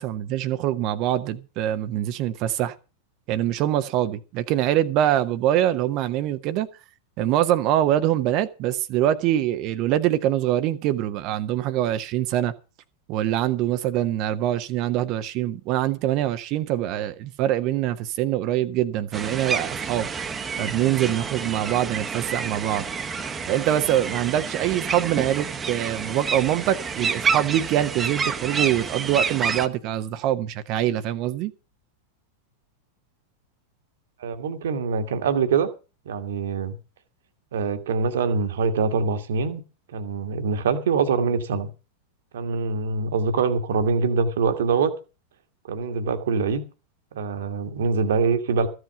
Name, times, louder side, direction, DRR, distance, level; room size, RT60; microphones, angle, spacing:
voice 1, 0.0-2.7 3.3-6.7 7.2-12.5 13.1-20.1 20.6-22.8 23.5-31.5, right 12 dB, 40° right, 0.9 m, -24 dB
sound 1, 19.1-29.7, right 5 dB, 20° right, 1.1 m, -29 dB
voice 2, 34.2-35.7 36.0-36.8 37.5-39.6 39.9-41.7 42.3-44.9 45.7-46.6 47.1-48.7, right 5 dB, 60° right, 1.6 m, -24 dB
14.5 x 8.0 x 6.8 m
figure-of-eight pair, 90°, 0 cm